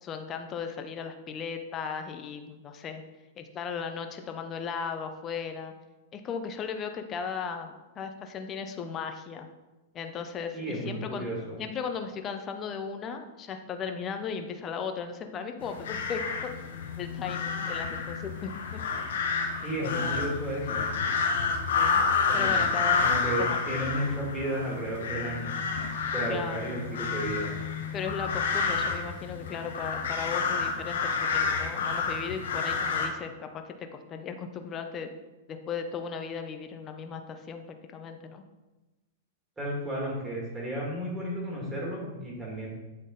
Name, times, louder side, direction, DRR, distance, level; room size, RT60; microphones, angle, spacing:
voice 1, 0.0-3.0 3.4-5.7 6.1-9.5 9.9-11.3 11.6-16.5 17.0-18.8 19.8-20.3 21.7-22.0 22.3-23.1 23.4-23.6 26.3-26.7 27.9-35.1 35.5-38.4, left 6 dB, 25° left, 6 dB, 0.6 m, -36 dB
voice 2, 10.5-11.6 19.6-20.8 22.3-22.7 23.0-25.6 26.1-27.5 39.6-42.7, right 1 dB, 15° right, -3 dB, 2.1 m, -33 dB
sound 1, 15.6-33.1, left 5 dB, 80° left, 0.9 m, -29 dB
8.5 x 3.7 x 3.9 m, 1.1 s
hypercardioid pair, 140°, 0 cm